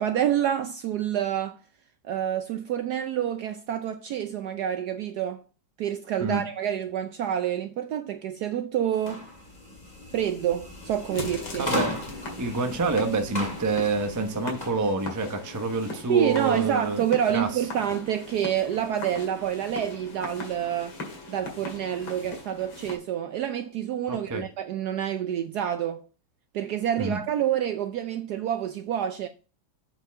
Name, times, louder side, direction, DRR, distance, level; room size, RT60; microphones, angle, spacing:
voice 1, 0.0-1.6 2.1-5.4 5.8-9.3 10.1-11.7 16.1-21.0 21.3-26.0 26.5-29.3, right 10 dB, 75° right, 0.9 m, -28 dB
sound 1, 8.9-14.8, left 1 dB, 20° left, 1.9 m, -36 dB
sound 2, 11.1-23.0, left 2 dB, 80° left, 2.9 m, -40 dB
voice 2, 11.6-12.0 12.4-17.0 17.3-17.5 24.1-24.4 27.0-27.2, right 3 dB, 25° right, 0.4 m, -27 dB
8.0 x 4.6 x 4.6 m
omnidirectional pair, 2.2 m